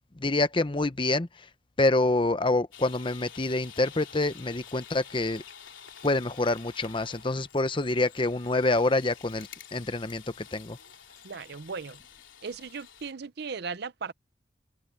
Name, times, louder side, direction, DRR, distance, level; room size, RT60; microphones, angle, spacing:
voice 1, 0.1-1.5 1.8-5.4 6.0-10.8, left 2 dB, 25° left, 0.8 m, -27 dB
sound 1, 2.7-13.1, left 8 dB, 85° left, 3.3 m, -49 dB
voice 2, 11.2-12.0 12.4-14.1, right 5 dB, 55° right, 0.6 m, -37 dB
head